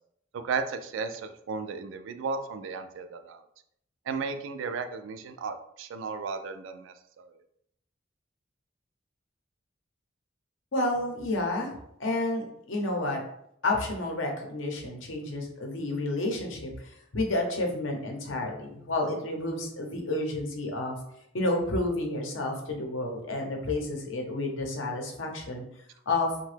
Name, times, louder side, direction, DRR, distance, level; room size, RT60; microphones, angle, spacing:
voice 1, 0.3-3.5 4.1-7.4, right 5 dB, 75° right, 8 dB, 0.3 m, -34 dB
voice 2, 10.7-11.7 12.0-13.2 13.6-21.0 21.3-25.6 26.1-26.3, left 2 dB, 80° left, 1 dB, 0.7 m, -30 dB
2.8 x 2.2 x 3.2 m, 0.73 s
head